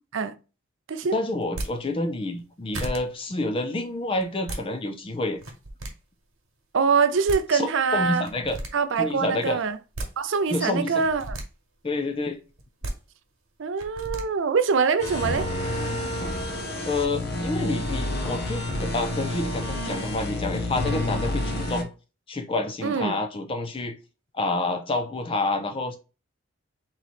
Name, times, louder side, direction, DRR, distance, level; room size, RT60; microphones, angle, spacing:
voice 1, 1.1-5.4 7.5-8.6 9.0-9.6 10.5-11.0 11.8-12.4 16.9-21.9 22.3-24.0 24.3-26.0, left 2 dB, 25° left, 0.4 m, -28 dB
sound 1, 1.4-1.7 2.4-2.5 2.7-3.0 4.2-4.6 5.3-5.9 7.0-7.1 7.3-7.4 8.2-8.7 9.7-10.1 11.0-11.4 12.6-12.9 13.8-14.2, right 1 dB, 80° right, 1.3 m, -33 dB
voice 2, 6.7-8.3 8.7-9.8 10.2-11.4 13.6-15.5 22.8-23.2, right 5 dB, 60° right, 0.4 m, -24 dB
sound 2, 15.0-21.8, left 1 dB, 50° left, 0.8 m, -29 dB
3.8 x 3.1 x 4.1 m
head